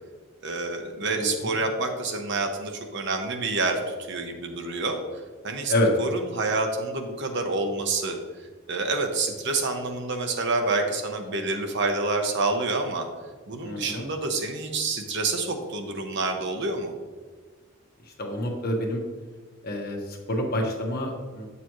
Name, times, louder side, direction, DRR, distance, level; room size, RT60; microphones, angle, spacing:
voice 1, 0.4-5.0 5.4-5.7 6.0-8.2 8.7-13.1 13.5-16.9, right 3 dB, 55° right, 4 dB, 0.9 m, -28 dB
voice 2, 1.1-1.5 5.7-5.9 13.6-14.1 18.0-19.0 19.6-21.5, left 1 dB, 45° left, 1 dB, 1.3 m, -28 dB
8.4 x 6.9 x 3.1 m, 1.5 s
head